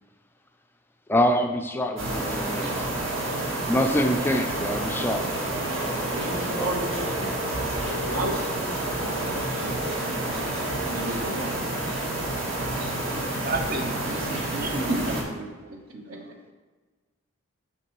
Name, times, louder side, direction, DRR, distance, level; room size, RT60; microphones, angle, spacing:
voice 1, 1.1-2.7 3.7-5.2 12.9-13.2, equal, 10° left, 5 dB, 0.3 m, -25 dB
sound 1, 2.0-15.2, right 1 dB, 65° right, 1.5 m, -29 dB
voice 2, 5.9-7.3 8.0-11.5 14.9-15.3 16.1-16.2, right 1 dB, 80° right, 2 dB, 1.1 m, -34 dB
voice 3, 13.4-14.9 15.7-16.2, right 3 dB, 45° right, 6 dB, 0.6 m, -33 dB
7.8 x 6.0 x 3.0 m, 1.3 s
head